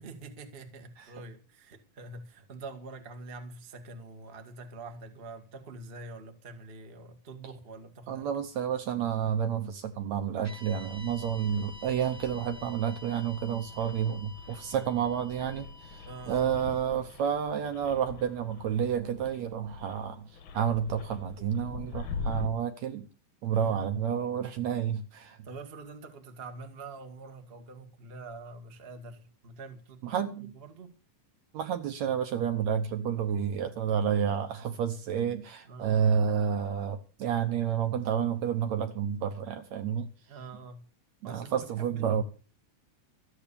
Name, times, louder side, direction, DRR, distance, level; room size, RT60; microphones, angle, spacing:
voice 1, 0.0-8.3 14.7-14.9 16.0-16.5 23.5-23.8 25.4-30.3 30.5-30.9 35.7-36.4 40.3-40.8 41.2-42.2, right 3 dB, 30° right, 1.0 m, -45 dB
voice 2, 8.1-23.1 23.4-25.4 30.0-30.5 31.5-40.1 41.2-42.2, right 8 dB, 65° right, 2.0 m, -30 dB
sound 1, 10.4-18.7, left 1 dB, 15° left, 0.6 m, -51 dB
sound 2, 10.8-22.5, left 5 dB, 60° left, 1.4 m, -43 dB
13.5 x 8.6 x 6.9 m
omnidirectional pair, 3.9 m